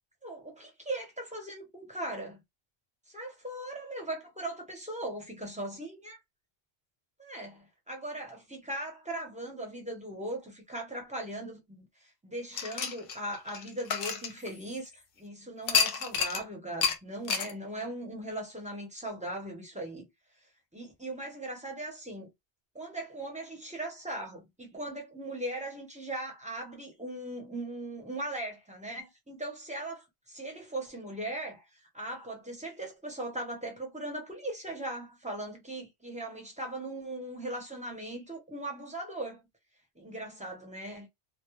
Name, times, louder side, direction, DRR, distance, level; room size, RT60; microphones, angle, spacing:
voice 1, 0.2-2.4 3.1-6.2 7.2-20.1 20.7-22.3 22.7-31.6 31.9-39.4 40.0-41.1, right 1 dB, 10° right, 0.7 m, -39 dB
sound 1, 12.5-14.9 15.7-16.4 16.8-17.0 17.3-17.5, left 6 dB, 65° left, 0.7 m, -30 dB
2.3 x 2.1 x 3.0 m
omnidirectional pair, 1.1 m